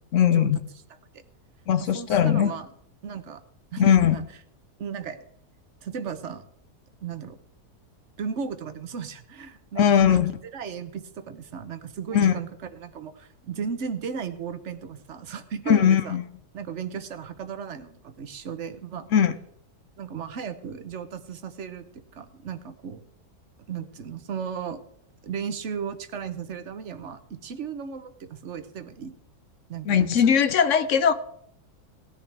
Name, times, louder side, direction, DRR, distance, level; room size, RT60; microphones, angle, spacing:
voice 1, 0.1-0.6 1.7-2.5 3.8-4.2 9.8-10.3 12.1-12.3 15.7-16.2 19.1-19.3 29.9-31.1, left 8 dB, 60° left, 12 dB, 1.0 m, -19 dB
voice 2, 1.8-2.7 3.0-3.4 3.7-4.2 4.8-5.2 5.8-6.4 7.0-7.4 8.2-10.2 10.5-16.2 16.5-19.1 20.0-21.9 22.1-23.0 23.7-24.8 25.2-29.1 29.7-30.4, right 6 dB, 55° right, 10 dB, 1.1 m, -35 dB
18.0 x 10.5 x 3.4 m, 0.69 s
omnidirectional pair, 1.7 m